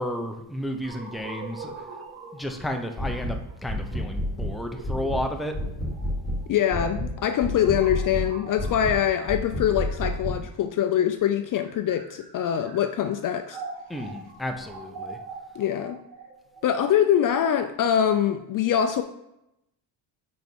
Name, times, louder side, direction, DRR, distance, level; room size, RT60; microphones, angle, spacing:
voice 1, 0.0-1.9 2.3-5.5 13.9-15.2, left 1 dB, ahead, 4 dB, 0.7 m, -32 dB
sound 1, 0.8-10.7 11.4-18.4, right 4 dB, 80° right, 1.7 m, -44 dB
sound 2, 3.0-3.4 3.7-4.5 4.8-5.2 5.5-6.4 6.7-7.1 7.4-8.3 8.6-9.0 9.3-10.4, left 1 dB, 20° left, 1.9 m, -29 dB
voice 2, 6.5-13.6 15.6-16.0 16.6-19.0, left 9 dB, 45° left, 9 dB, 0.5 m, -24 dB
5.4 x 5.1 x 4.6 m, 0.84 s
cardioid pair, 105°, 47 cm